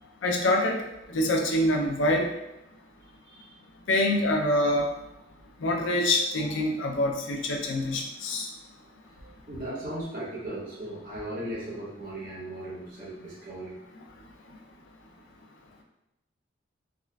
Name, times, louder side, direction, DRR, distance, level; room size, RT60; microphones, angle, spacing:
voice 1, 0.2-0.8 1.1-2.3 3.9-4.9 5.6-8.5, left 1 dB, 85° left, 1 dB, 0.5 m, -25 dB
voice 2, 9.2-13.7, right 1 dB, 50° right, -9 dB, 1.4 m, -37 dB
3.5 x 2.4 x 2.2 m, 0.90 s
head